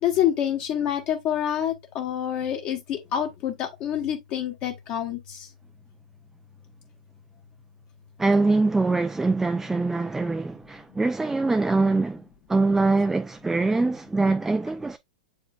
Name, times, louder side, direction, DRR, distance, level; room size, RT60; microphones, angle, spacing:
voice 1, 0.0-5.5, left 10 dB, 35° left, 1.3 m, -27 dB
voice 2, 8.2-15.0, right 3 dB, 5° right, 0.4 m, -23 dB
7.8 x 4.9 x 2.4 m
figure-of-eight pair, 105°, 4 cm